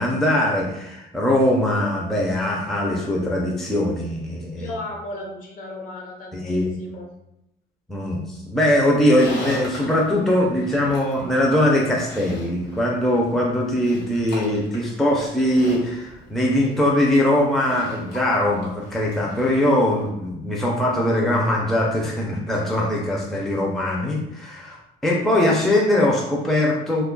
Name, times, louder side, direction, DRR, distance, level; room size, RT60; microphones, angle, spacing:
voice 1, 0.0-4.7 6.3-6.7 7.9-27.0, left 1 dB, ahead, -3 dB, 0.4 m, -21 dB
voice 2, 4.6-7.1, left 2 dB, 50° left, 0 dB, 0.8 m, -35 dB
Livestock farm animals working animals, 8.8-20.1, equal, 75° left, 1.2 m, -39 dB
2.7 x 2.2 x 3.7 m, 0.84 s
cardioid pair, 155°, 17 cm